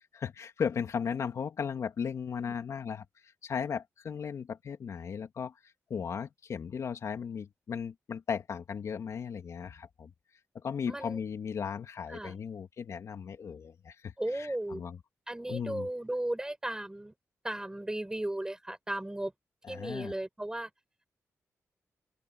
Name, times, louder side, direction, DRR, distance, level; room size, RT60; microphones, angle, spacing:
voice 1, 0.1-3.0 3.4-5.5 5.9-10.1 10.5-15.0 15.5-15.9 19.7-20.1, left 6 dB, 70° left, 3.0 m, -36 dB
voice 2, 10.9-11.2 12.1-12.4 14.2-14.8 15.3-17.1 17.4-19.3 19.7-20.7, right 1 dB, 10° right, 5.6 m, -35 dB
open air
cardioid pair, 95°, 5 cm